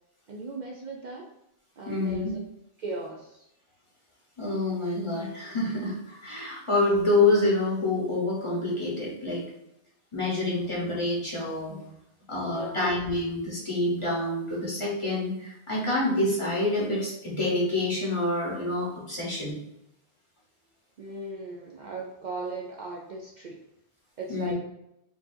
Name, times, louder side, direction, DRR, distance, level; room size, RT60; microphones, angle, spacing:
voice 1, 0.3-1.3 1.8-2.5 2.8-3.5 12.5-12.9 21.0-23.6 24.2-24.5, right 3 dB, 55° right, -2 dB, 0.5 m, -38 dB
voice 2, 1.9-2.3 4.4-9.4 10.1-11.7 12.3-19.6 24.3-24.5, left 2 dB, 30° left, -5 dB, 1.0 m, -27 dB
4.7 x 2.7 x 2.6 m, 0.82 s
omnidirectional pair, 1.1 m